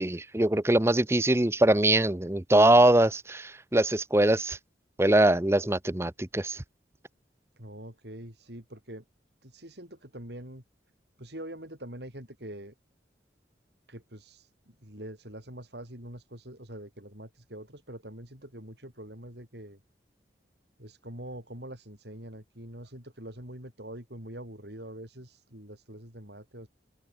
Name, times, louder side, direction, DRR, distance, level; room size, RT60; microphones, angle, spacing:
voice 1, 0.0-4.6 5.0-6.6, right 1 dB, 15° right, 0.7 m, -22 dB
voice 2, 7.6-9.0 9.4-10.6 11.2-12.7 13.9-19.8 20.8-26.7, right 1 dB, 70° right, 7.8 m, -44 dB
open air
head